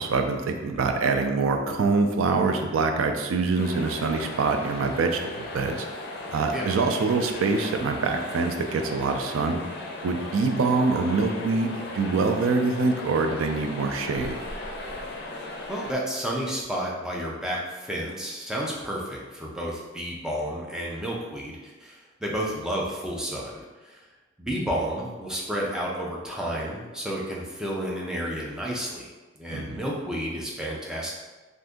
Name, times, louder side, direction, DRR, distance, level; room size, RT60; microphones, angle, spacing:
voice 1, 0.0-5.8 6.3-9.6 10.0-14.4 29.5-29.8, right 4 dB, 90° right, 5 dB, 0.4 m, -25 dB
sound 1, 3.6-15.9, left 2 dB, 55° left, 0.5 m, -37 dB
voice 2, 15.7-24.0 24.4-29.1 29.4-31.1, equal, 5° right, -3 dB, 0.5 m, -31 dB
2.6 x 2.6 x 3.5 m, 1.2 s
head